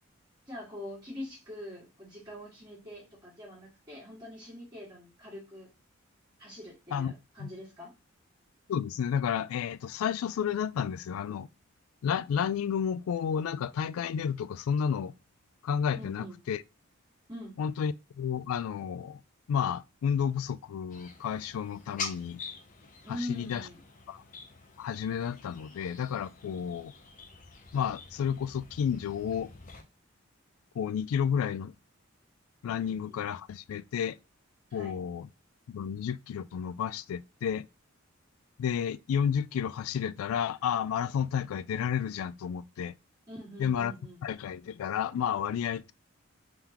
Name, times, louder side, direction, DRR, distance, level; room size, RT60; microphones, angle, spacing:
voice 1, 0.5-5.7 6.4-7.9 16.0-16.4 17.3-17.5 23.0-23.8 32.8-33.2 34.7-34.9 43.3-44.2, equal, 20° right, 1.8 m, -43 dB
voice 2, 8.7-11.5 12.0-15.1 15.6-16.6 17.6-19.2 19.5-22.4 23.1-23.7 24.1-24.2 24.8-26.9 27.7-29.5 30.8-31.7 32.6-34.2 34.7-35.3 35.7-37.7 38.6-42.9 43.6-43.9 44.2-45.9, left 8 dB, 90° left, 0.3 m, -31 dB
sound 1, 20.9-29.8, left 5 dB, 40° left, 0.6 m, -45 dB
3.8 x 3.5 x 2.9 m
head